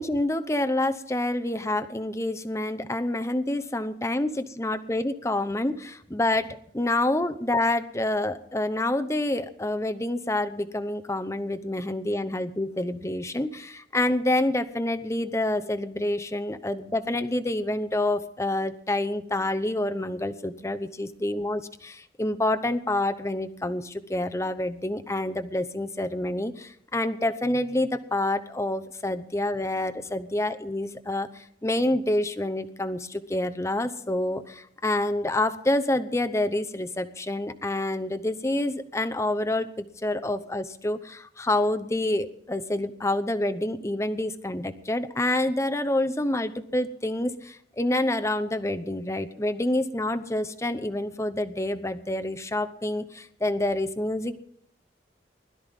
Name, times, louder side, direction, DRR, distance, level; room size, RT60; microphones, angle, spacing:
voice 1, 0.0-54.3, left 1 dB, 15° left, 9 dB, 0.8 m, -27 dB
20.5 x 12.5 x 3.6 m, 0.68 s
head